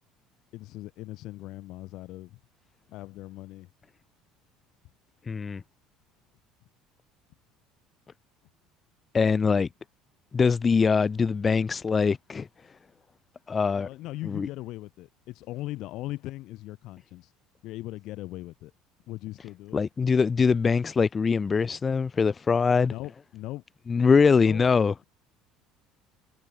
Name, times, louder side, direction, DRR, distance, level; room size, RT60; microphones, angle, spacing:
voice 1, 0.5-2.4 2.9-3.7 13.7-17.3 17.6-18.7 19.1-19.8 22.9-23.6 24.4-24.6, left 17 dB, 60° left, 5.2 m, -39 dB
voice 2, 5.3-5.6 9.1-9.7 10.3-12.5 13.5-13.9 14.3-14.5 19.7-22.9 23.9-24.9, left 5 dB, 30° left, 0.4 m, -23 dB
hypercardioid pair, 65°, 0 cm